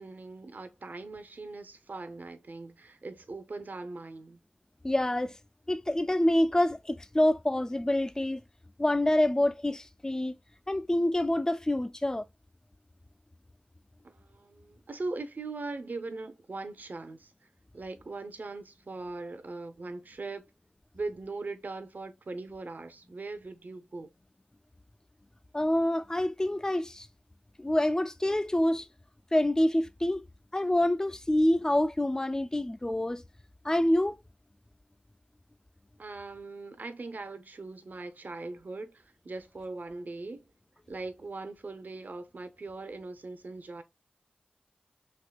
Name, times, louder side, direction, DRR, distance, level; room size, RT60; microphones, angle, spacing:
voice 1, 0.0-4.4 14.0-17.3 17.7-20.5 20.9-24.1 36.0-40.5 40.9-43.8, right 3 dB, 60° right, 0.5 m, -40 dB
voice 2, 4.8-5.3 5.7-8.4 8.8-10.4 10.7-12.3 25.5-27.1 27.6-28.9 29.3-30.2 30.5-33.2 33.6-34.1, left 1 dB, 20° left, 0.3 m, -26 dB
3.5 x 2.7 x 2.2 m
cardioid pair, 40°, 3 cm